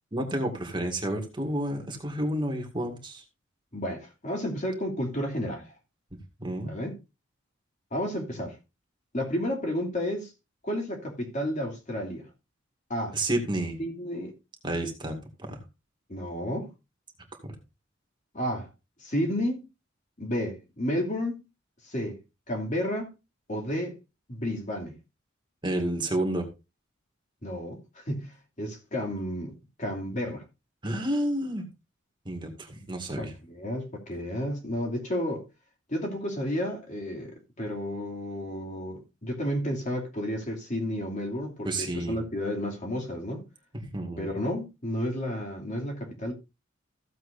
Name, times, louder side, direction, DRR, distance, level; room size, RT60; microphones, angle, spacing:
voice 1, 0.1-3.2 6.1-6.7 13.1-13.8 14.6-15.6 17.3-17.4 25.6-26.4 30.8-31.6 32.3-33.3 41.6-42.2 43.7-44.3, right 1 dB, 25° right, 2.1 m, -30 dB
voice 2, 3.7-5.7 6.7-7.0 7.9-8.6 9.1-10.3 10.6-12.3 12.9-13.2 13.8-14.3 16.1-16.7 18.3-18.7 19.0-19.6 20.2-21.4 21.8-22.2 22.5-23.1 23.5-24.0 24.3-24.9 27.4-30.4 33.2-35.4 35.9-37.3 37.6-43.4 44.2-46.3, equal, 40° left, 2.7 m, -31 dB
15.0 x 7.7 x 2.6 m
head